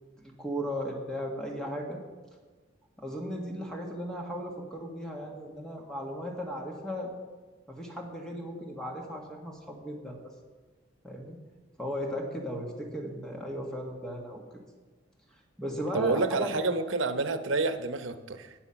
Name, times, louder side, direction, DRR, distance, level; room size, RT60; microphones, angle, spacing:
voice 1, 0.2-2.0 3.0-7.1 7.7-10.3 11.0-11.4 11.8-14.4 15.6-16.7, equal, 5° left, 0 dB, 1.6 m, -36 dB
voice 2, 15.9-18.5, right 3 dB, 85° right, 10 dB, 0.9 m, -29 dB
19.5 x 7.0 x 5.8 m, 1.3 s
head